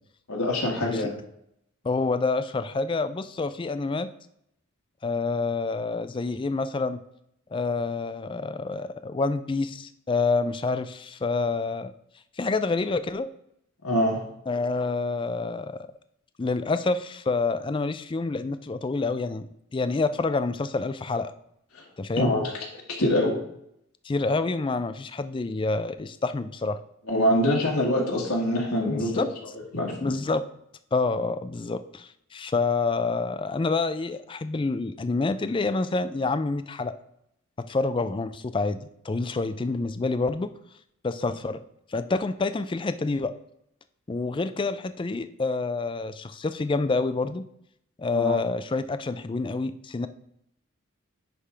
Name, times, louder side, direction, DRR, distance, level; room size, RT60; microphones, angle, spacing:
voice 1, 0.3-1.1 13.8-14.2 21.7-21.9 22.2-23.4 27.1-29.3 29.7-30.1 48.1-48.4, left 1 dB, 80° left, -1 dB, 1.7 m, -25 dB
voice 2, 1.8-4.1 5.0-7.0 7.5-11.9 12.4-13.3 14.5-15.8 16.4-21.3 22.0-22.3 24.0-26.8 28.9-29.3 30.0-30.4 30.9-36.9 37.7-40.5 41.0-41.6 41.9-43.3 44.1-47.4 48.0-50.1, left 3 dB, 25° left, 12 dB, 0.3 m, -27 dB
9.9 x 3.5 x 5.0 m, 0.75 s
head